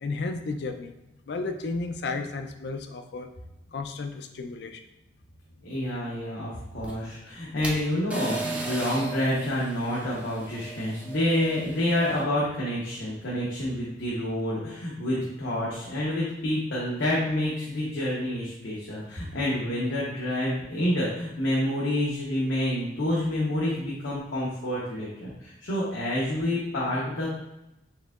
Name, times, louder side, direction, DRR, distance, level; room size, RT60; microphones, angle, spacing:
voice 1, 0.0-0.9 1.3-3.3 3.7-4.8, left 3 dB, 60° left, 6 dB, 0.4 m, -33 dB
voice 2, 5.6-27.4, left 1 dB, 90° left, -6 dB, 0.8 m, -28 dB
sound 1, 6.7-12.2, right 3 dB, 5° right, 0.4 m, -37 dB
4.6 x 3.6 x 2.3 m, 0.89 s
head